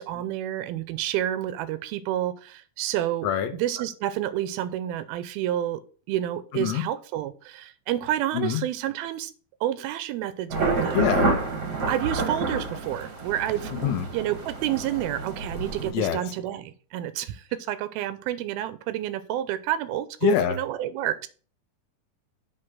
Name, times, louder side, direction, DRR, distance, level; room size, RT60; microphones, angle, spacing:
voice 1, 0.0-5.8 6.1-9.3 9.6-11.0 11.9-13.7 14.1-21.3, right 12 dB, 85° right, 14 dB, 2.6 m, -29 dB
voice 2, 3.2-3.5 6.5-6.8 8.3-8.6 10.9-11.3 13.7-14.1 15.9-16.2 20.2-20.6, left 11 dB, 75° left, 7 dB, 1.6 m, -24 dB
sound 1, 10.5-15.9, right 3 dB, 45° right, 1.3 m, -28 dB
7.8 x 3.9 x 6.1 m, 0.39 s
omnidirectional pair, 4.2 m